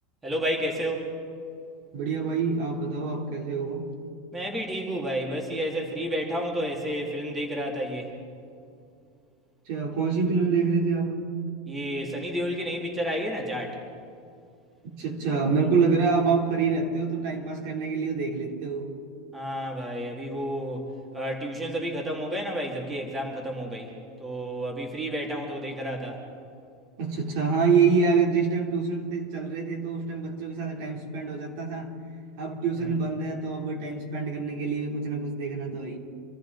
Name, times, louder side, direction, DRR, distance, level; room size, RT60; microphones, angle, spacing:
voice 1, 0.2-1.1 4.3-8.1 11.7-13.8 19.3-23.9 24.2-26.2 32.8-32.9, equal, 15° right, 0 dB, 2.4 m, -31 dB
voice 2, 1.9-4.0 9.7-11.4 14.9-18.9 27.0-32.0 32.4-36.0, right 5 dB, 60° right, 0 dB, 3.2 m, -26 dB
26.5 x 13.5 x 4.0 m, 2.4 s
supercardioid pair, 150°, 0 cm